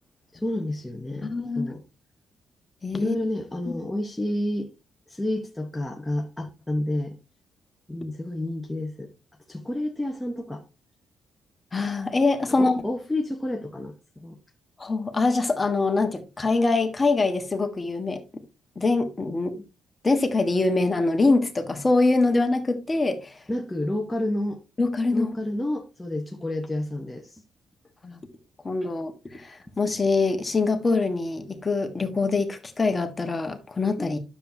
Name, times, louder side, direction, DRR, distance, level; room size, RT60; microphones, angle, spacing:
voice 1, 0.3-1.8 2.9-4.7 5.1-7.2 7.9-9.1 9.5-10.6 12.6-14.4 23.5-24.6 25.1-27.4 34.0-34.2, left 1 dB, 10° left, 1.1 m, -30 dB
voice 2, 1.2-1.7 2.8-3.1 3.7-3.8 11.7-12.8 14.8-18.4 18.7-19.5 20.0-23.4 24.8-25.4 28.0-28.2 28.6-34.2, left 3 dB, 25° left, 1.5 m, -24 dB
10.0 x 7.2 x 2.8 m
cardioid pair, 90°, 0 cm